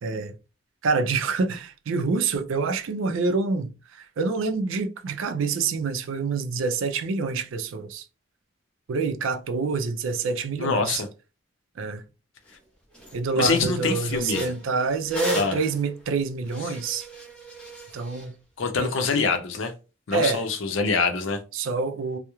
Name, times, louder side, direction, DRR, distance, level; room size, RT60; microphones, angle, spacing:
voice 1, 0.0-0.4 0.8-8.1 8.9-11.0 11.8-12.0 13.1-17.1 17.9-18.4 18.8-18.9 20.1-20.4 21.5-22.2, right 4 dB, 80° right, 0.4 m, -27 dB
voice 2, 10.6-11.1 13.3-14.5 15.3-15.6 16.7-16.8 18.6-19.7 20.1-21.4, left 4 dB, 75° left, 0.5 m, -25 dB
sound 1, 12.5-12.6 12.9-13.2 13.5-18.3, right 2 dB, 5° left, 0.5 m, -36 dB
2.3 x 2.0 x 2.9 m
head